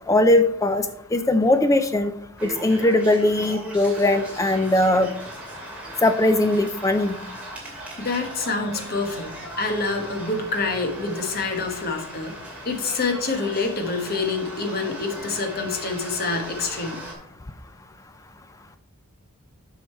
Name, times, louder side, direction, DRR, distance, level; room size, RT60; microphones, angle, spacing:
voice 1, 0.1-0.8 1.1-2.1 2.4-5.1 6.0-7.2, left 1 dB, 15° left, 9 dB, 0.3 m, -19 dB
sound 1, 2.4-17.1, right 1 dB, 5° right, 2.3 m, -38 dB
voice 2, 8.0-12.3 12.6-17.0, left 3 dB, 45° left, 4 dB, 1.3 m, -27 dB
7.8 x 5.5 x 4.3 m, 0.79 s
head